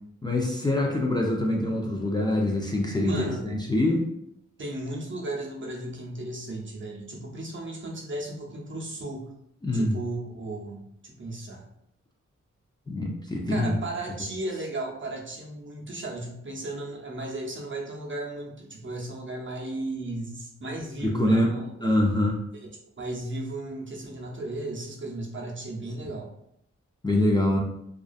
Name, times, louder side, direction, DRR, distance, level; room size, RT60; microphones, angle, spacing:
voice 1, 0.2-4.1 9.6-10.0 12.9-13.8 21.0-21.5 21.8-22.4 27.0-27.6, left 1 dB, 15° left, -1 dB, 0.4 m, -24 dB
voice 2, 3.0-3.5 4.6-9.3 9.7-11.6 13.5-22.0 23.0-26.3, right 2 dB, 40° right, -2 dB, 0.6 m, -35 dB
2.4 x 2.3 x 2.4 m, 0.75 s
cardioid pair, 55°, 29 cm